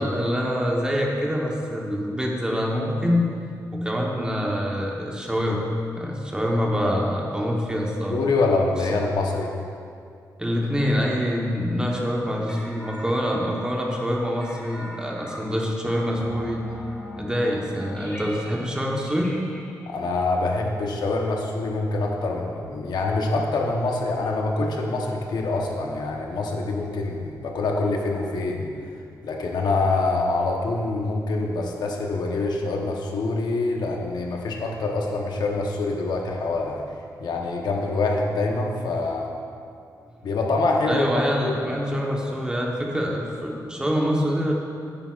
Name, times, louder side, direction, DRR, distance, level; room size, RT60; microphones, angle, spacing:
voice 1, 0.0-3.3 3.7-5.6 5.9-8.2 10.4-16.6 17.2-19.4 40.9-44.5, equal, 10° right, -2 dB, 1.1 m, -25 dB
voice 2, 8.1-9.5 19.9-28.7 29.2-36.8 37.2-39.3 40.2-41.6, left 3 dB, 80° left, 0 dB, 1.0 m, -25 dB
sound 1, 12.5-21.4, left 1 dB, 15° left, 1.1 m, -42 dB
9.9 x 9.0 x 2.5 m, 2.4 s
wide cardioid pair, 125°, 7 cm